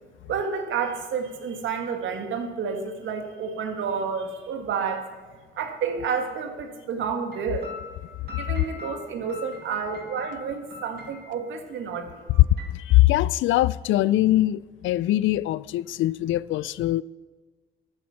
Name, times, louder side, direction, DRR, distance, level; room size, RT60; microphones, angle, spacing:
voice 1, 0.3-5.1 5.6-7.7 8.3-12.2, right 6 dB, 75° right, 2.0 m, -30 dB
sound 1, 7.3-11.5 11.9-12.0 12.3-12.8, left 3 dB, 55° right, 2.7 m, -42 dB
voice 2, 12.7-17.0, left 15 dB, 80° left, 0.4 m, -22 dB
12.5 x 10.0 x 5.8 m
cardioid pair, 90°, 20 cm